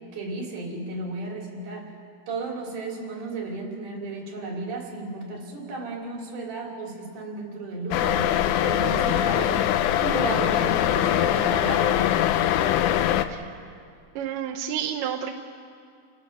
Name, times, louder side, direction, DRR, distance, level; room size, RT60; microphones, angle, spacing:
voice 1, 0.1-2.0 2.3-9.7 10.0-12.1, right 3 dB, 55° right, 0 dB, 4.5 m, -34 dB
sound 1, 7.9-13.3, left 11 dB, 85° left, 1.7 m, -22 dB
voice 2, 13.3-13.8 14.2-15.4, right 9 dB, 70° right, 2 dB, 2.2 m, -31 dB
29.5 x 17.5 x 6.1 m, 2.3 s
omnidirectional pair, 4.4 m